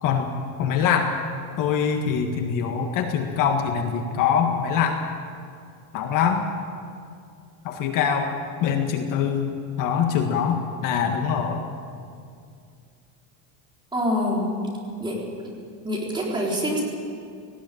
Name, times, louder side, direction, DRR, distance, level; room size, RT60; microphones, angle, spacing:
voice 1, 0.6-1.1 1.6-5.0 5.9-6.5 7.6-8.3 8.6-9.5 9.8-11.7, left 7 dB, 45° left, 4 dB, 1.7 m, -23 dB
voice 2, 13.9-14.5 15.0-15.2 15.8-16.8, equal, 10° right, -3 dB, 3.9 m, -25 dB
18.5 x 16.5 x 9.2 m, 2.3 s
cardioid pair, 170°, 42 cm